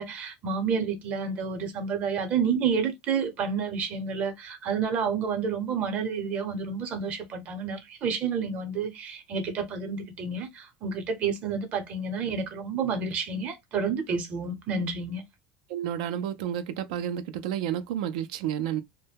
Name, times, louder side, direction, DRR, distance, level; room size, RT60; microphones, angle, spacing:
voice 1, 0.0-15.2, right 5 dB, 40° right, 0.7 m, -30 dB
voice 2, 15.7-18.8, right 10 dB, 80° right, 0.4 m, -31 dB
2.2 x 2.1 x 3.3 m
supercardioid pair, 140°, 4 cm